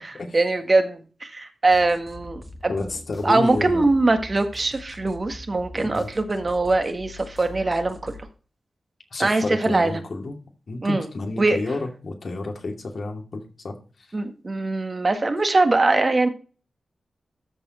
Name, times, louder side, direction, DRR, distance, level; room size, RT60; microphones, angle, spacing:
voice 1, 0.0-2.9 3.2-8.1 9.2-10.0 10.8-11.1 11.4-11.6 14.1-16.3, right 2 dB, 35° right, 7 dB, 1.7 m, -22 dB
sound 1, 1.7-8.2, left 1 dB, 5° left, 1.8 m, -43 dB
voice 2, 2.7-3.9 5.7-6.1 9.1-10.4 10.7-13.7, left 2 dB, 60° left, 3 dB, 2.5 m, -30 dB
13.0 x 4.6 x 4.3 m, 0.36 s
wide cardioid pair, 90°, 0 cm